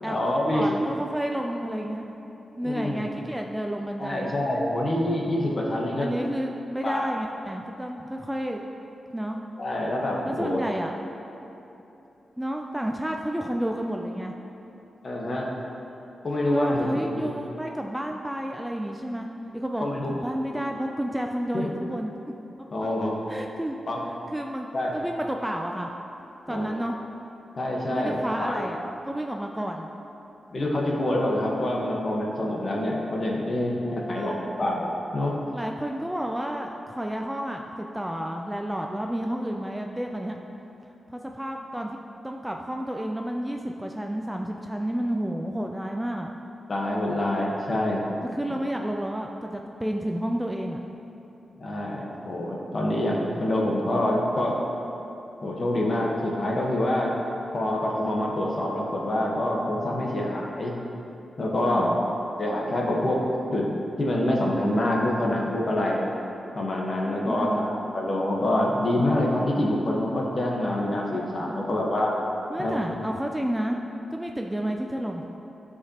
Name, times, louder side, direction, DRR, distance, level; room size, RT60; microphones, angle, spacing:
voice 1, 0.0-0.7 2.6-3.0 4.0-6.1 6.8-7.1 9.6-10.6 15.0-15.5 16.2-17.3 19.8-20.3 21.5-21.6 22.7-23.2 23.9-24.0 24.7-25.0 26.5-26.8 27.6-28.7 30.5-35.4 46.7-48.1 48.5-48.6 51.6-54.6 55.4-57.2 57.5-60.7 61.4-61.9 62.4-66.1 66.5-72.1 72.6-72.9, left 1 dB, 40° left, -2 dB, 1.1 m, -26 dB
voice 2, 0.5-2.1 2.6-4.3 6.0-8.6 9.1-9.4 10.2-11.0 12.4-14.3 16.5-19.3 19.5-22.1 23.3-23.8 24.3-24.7 24.9-25.9 26.5-27.0 27.9-28.8 29.0-29.9 33.9-34.5 35.5-40.4 41.1-42.0 42.2-46.3 48.3-50.8 61.6-62.0 67.2-67.7 71.5-71.9 72.5-73.8 74.1-75.2, right 1 dB, 5° right, 2 dB, 0.3 m, -31 dB
13.0 x 4.9 x 2.9 m, 3.0 s
wide cardioid pair, 130°, 0 cm